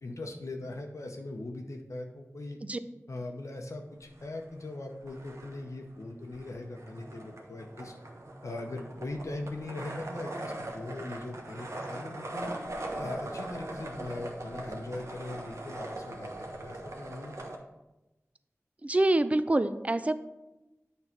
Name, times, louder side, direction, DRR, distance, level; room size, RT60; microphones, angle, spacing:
voice 1, 0.0-2.6 3.1-8.0 8.4-12.5 12.9-17.4, left 2 dB, 85° left, 3 dB, 0.8 m, -40 dB
sound 1, 4.0-4.8 5.0-17.6, right 1 dB, 70° right, 1.1 m, -41 dB
voice 2, 18.8-20.1, right 2 dB, 25° right, 12 dB, 0.4 m, -25 dB
8.4 x 3.2 x 5.9 m, 1.0 s
wide cardioid pair, 50°, 5 cm